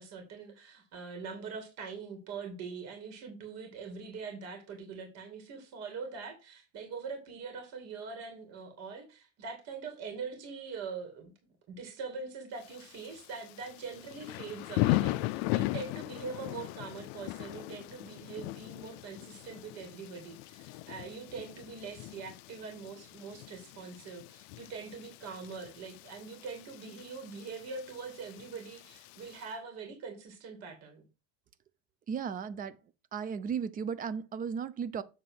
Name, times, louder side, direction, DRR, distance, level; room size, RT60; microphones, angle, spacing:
voice 1, 0.0-11.3 11.7-31.1, right 5 dB, 45° right, 2.5 m, -43 dB
Thunder / Rain, 12.6-29.5, left 19 dB, 55° left, 0.5 m, -38 dB
voice 2, 32.1-32.8 33.1-35.0, right 7 dB, 25° right, 0.5 m, -35 dB
7.6 x 3.7 x 6.2 m
supercardioid pair, 140°, 35 cm